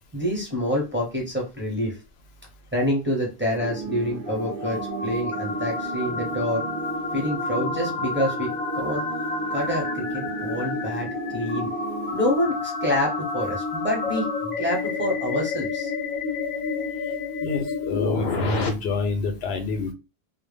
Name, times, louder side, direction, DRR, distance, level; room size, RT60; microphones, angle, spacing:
voice 1, 0.1-2.0 2.7-6.6 7.1-9.0 9.5-11.7 12.1-14.3 14.6-15.9, left 1 dB, 15° right, -2 dB, 0.7 m, -27 dB
sound 1, 3.6-18.7, left 4 dB, 60° left, 0.7 m, -30 dB
sound 2, 3.6-12.1, right 6 dB, 65° right, 0.7 m, -35 dB
voice 2, 17.4-19.9, left 4 dB, 85° left, 6 dB, 0.8 m, -27 dB
2.1 x 2.0 x 3.3 m, 0.28 s
omnidirectional pair, 1.0 m